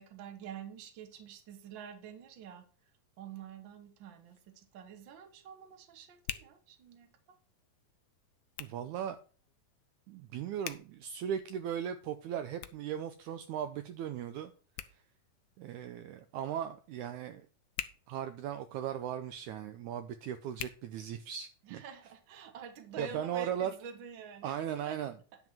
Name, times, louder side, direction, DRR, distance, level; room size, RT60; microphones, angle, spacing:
voice 1, 0.0-7.4 21.6-24.6 24.9-25.0, right 7 dB, 55° right, 1.3 m, -48 dB
Hands, 4.0-21.7, left 14 dB, 80° left, 1.9 m, -50 dB
voice 2, 8.6-9.2 10.1-14.5 14.9-15.0 15.6-17.5 18.1-21.8 23.0-23.7 24.4-25.1, right 9 dB, 85° right, 1.7 m, -37 dB
10.5 x 3.8 x 7.4 m
omnidirectional pair, 4.0 m